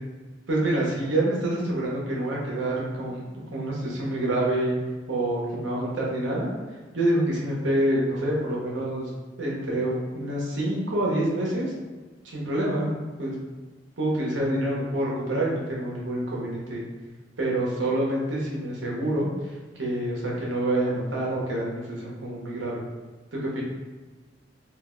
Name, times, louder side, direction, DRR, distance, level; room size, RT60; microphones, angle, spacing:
voice 1, 0.5-3.2 3.5-4.8 5.1-6.5 6.9-9.1 9.4-11.7 12.2-12.9 13.2-13.4 14.0-16.9 17.4-19.3 19.7-22.8 23.3-23.6, right 1 dB, 80° right, -4 dB, 0.9 m, -27 dB
2.5 x 2.1 x 3.6 m, 1.3 s
head